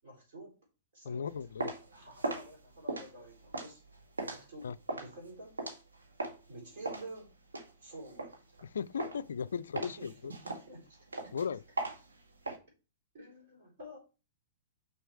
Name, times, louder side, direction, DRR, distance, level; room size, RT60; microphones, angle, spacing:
voice 1, 0.0-0.6 0.9-1.3 1.9-3.8 4.3-5.6 6.5-7.3 7.8-8.3 9.8-11.0 13.1-14.0, right 1 dB, 55° right, 4.7 m, -49 dB
voice 2, 1.1-1.7 4.6-4.8 8.6-10.3 11.3-11.6, left 6 dB, 65° left, 0.3 m, -37 dB
sound 1, 1.3-6.5 6.9-8.7 9.0-9.4 9.8-12.6, right 2 dB, 75° right, 1.5 m, -39 dB
6.1 x 5.9 x 4.5 m
figure-of-eight pair, 105°, 0 cm